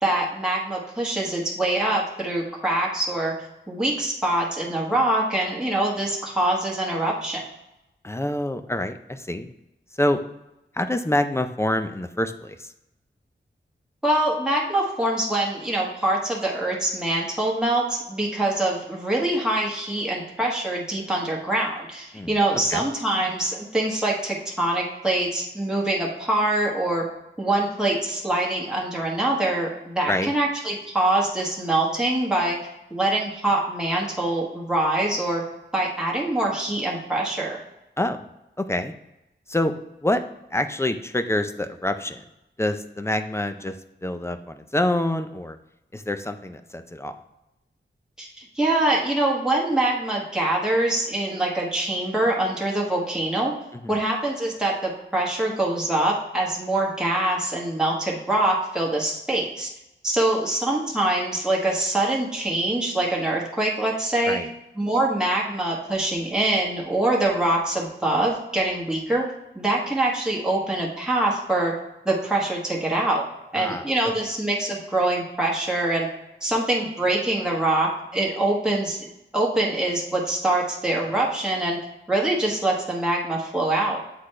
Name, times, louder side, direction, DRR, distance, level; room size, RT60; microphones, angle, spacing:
voice 1, 0.0-3.3 3.7-7.4 14.0-27.0 27.4-32.6 32.9-35.4 35.7-37.6 48.2-53.5 53.9-59.7 60.0-64.4 64.8-69.2 69.5-71.7 72.0-73.2 73.5-76.1 76.4-79.1 79.3-81.8 82.1-84.0, right 1 dB, 5° right, -4 dB, 1.3 m, -24 dB
voice 2, 8.0-9.5 9.9-10.2 10.7-12.7 22.1-22.4 22.7-22.8 30.1-30.3 38.0-38.2 38.6-38.9 39.5-39.7 40.0-40.2 40.5-42.2 42.6-45.6 45.9-47.2 53.7-54.0 64.3-64.5 73.5-73.9, left 1 dB, 15° left, 9 dB, 0.5 m, -26 dB
7.9 x 4.1 x 3.2 m, 0.91 s
wide cardioid pair, 80°, 19 cm